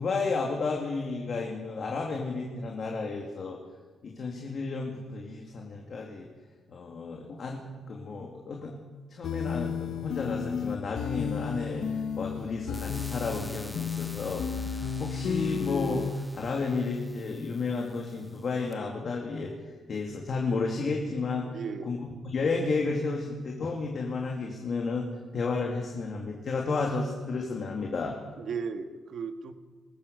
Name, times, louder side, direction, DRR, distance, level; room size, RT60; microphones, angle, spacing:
voice 1, 0.0-3.6 4.0-6.3 6.7-8.8 9.1-21.5 21.8-25.1 25.3-28.2, left 4 dB, 40° left, 0 dB, 2.6 m, -32 dB
sound 1, 9.2-16.1, left 7 dB, 70° left, 1.3 m, -33 dB
sound 2, 12.7-18.7, left 1 dB, 5° left, 1.2 m, -48 dB
voice 2, 21.5-21.9 28.4-29.5, right 5 dB, 55° right, 7 dB, 1.6 m, -35 dB
22.0 x 19.5 x 6.7 m, 1.4 s
wide cardioid pair, 170°, 0 cm